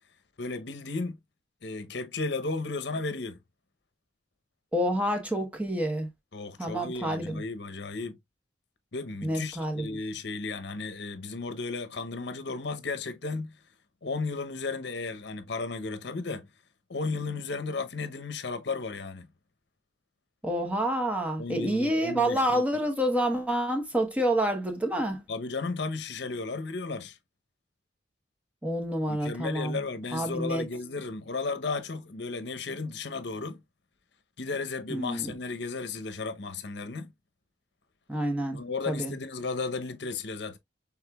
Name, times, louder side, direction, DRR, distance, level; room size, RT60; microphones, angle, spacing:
voice 1, 0.4-1.2 1.6-3.4 6.3-8.2 8.9-13.6 14.0-16.5 16.9-19.3 21.4-22.6 25.3-27.2 29.1-33.6 34.4-37.1 38.5-40.6, left 3 dB, 65° left, 0.8 m, -34 dB
voice 2, 4.7-6.1 6.6-7.4 9.2-10.0 20.4-25.2 28.6-29.8 30.1-30.6 34.9-35.3 38.1-38.6 38.9-39.1, right 1 dB, 5° right, 1.0 m, -28 dB
6.4 x 3.6 x 2.3 m
head